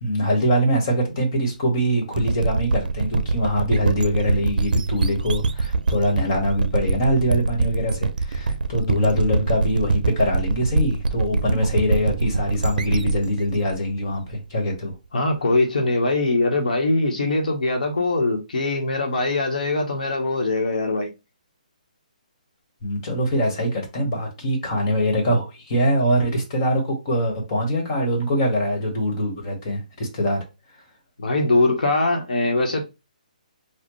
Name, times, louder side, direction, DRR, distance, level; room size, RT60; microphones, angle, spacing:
voice 1, 0.0-14.9 22.8-30.4, equal, 30° left, 1.5 m, -23 dB
sound 1, 2.1-14.7, right 3 dB, 85° right, 0.5 m, -24 dB
voice 2, 15.1-21.1 31.2-32.8, left 2 dB, 75° left, 1.2 m, -22 dB
4.3 x 2.3 x 3.1 m
hypercardioid pair, 165°, 5 cm